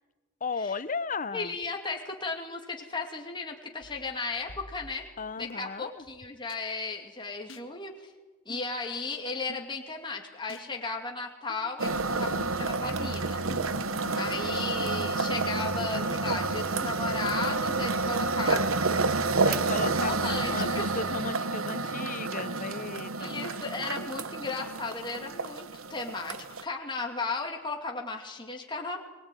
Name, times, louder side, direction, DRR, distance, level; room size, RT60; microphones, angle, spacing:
voice 1, 0.4-1.5 5.2-6.1 13.9-14.4 19.4-23.3, left 4 dB, 40° left, 15 dB, 0.9 m, -36 dB
voice 2, 1.3-5.1 5.4-8.1 8.5-13.4 14.2-18.7 19.5-19.7 20.0-20.9 23.1-29.0, left 3 dB, 25° left, 1 dB, 2.6 m, -35 dB
sound 1, 3.8-5.5 6.5-6.6 7.5-7.7 8.5-8.7 9.5-9.7 10.5-10.7 11.5-11.6 12.5-12.6 13.5-13.8 14.5-14.8 15.5-15.9 16.5-16.6 17.5-17.6 18.5-18.6, left 1 dB, 65° left, 2.0 m, -47 dB
sound 2, 11.8-21.2, right 2 dB, 65° right, 2.0 m, -42 dB
sound 3, 11.8-26.6, right 3 dB, 85° right, 1.1 m, -30 dB
23.0 x 21.5 x 9.3 m, 1.2 s
head